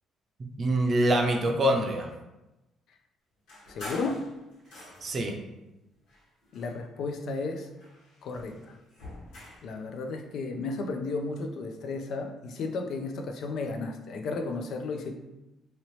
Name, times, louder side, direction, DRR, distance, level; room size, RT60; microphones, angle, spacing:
voice 1, 0.6-2.1 5.0-5.4, right 1 dB, 40° right, 3 dB, 0.5 m, -25 dB
sound 1, 3.5-5.3 6.0-7.2 7.5-9.7, left 1 dB, 90° left, 1.3 m, -46 dB
voice 2, 3.7-4.2 6.5-7.7 8.2-8.8 9.6-15.1, left 3 dB, 70° left, 4 dB, 0.4 m, -33 dB
2.9 x 2.8 x 3.1 m, 0.99 s
cardioid pair, 95°, 0 cm